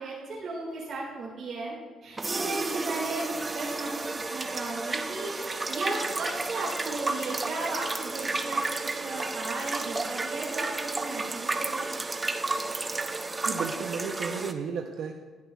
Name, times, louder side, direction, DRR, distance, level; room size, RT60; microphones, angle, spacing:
voice 1, 0.0-1.8 2.0-11.9, right 3 dB, 55° right, -5 dB, 2.0 m, -36 dB
sound 1, 2.2-14.5, right 3 dB, 25° right, 0.5 m, -32 dB
voice 2, 13.4-15.2, right 6 dB, 75° right, 3 dB, 0.5 m, -33 dB
11.5 x 10.5 x 2.3 m, 1.4 s
cardioid pair, 90°, 0 cm